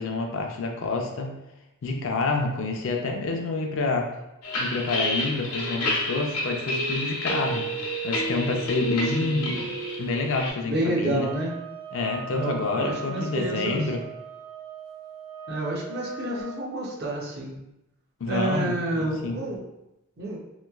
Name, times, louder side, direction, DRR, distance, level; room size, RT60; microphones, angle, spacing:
voice 1, 0.0-1.3 1.8-4.1 4.6-9.7 10.0-11.3 11.9-14.0 18.2-19.4, left 3 dB, 60° left, 2 dB, 0.4 m, -28 dB
sound 1, 4.4-10.5, equal, 90° left, 0.8 m, -29 dB
voice 2, 9.2-9.6 10.6-11.5 12.3-13.8 15.5-17.6 18.3-19.6 20.2-20.4, right 2 dB, 45° right, -2 dB, 0.6 m, -29 dB
sound 2, 11.2-16.6, right 4 dB, 85° right, 0.6 m, -40 dB
3.1 x 2.9 x 2.3 m, 0.90 s
head